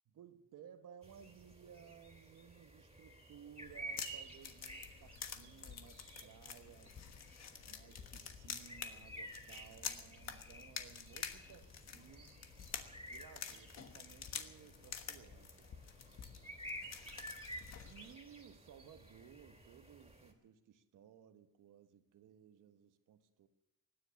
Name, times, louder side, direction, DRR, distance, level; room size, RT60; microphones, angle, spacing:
voice 1, 0.1-7.0 7.7-12.4 13.0-15.7 17.8-23.5, right 8 dB, 75° right, 9 dB, 1.3 m, -59 dB
sound 1, 1.0-20.3, right 1 dB, 20° right, 2.9 m, -53 dB
sound 2, 3.6-18.1, left 7 dB, 55° left, 1.4 m, -49 dB
17.0 x 10.0 x 7.0 m, 0.92 s
cardioid pair, 80°, 32 cm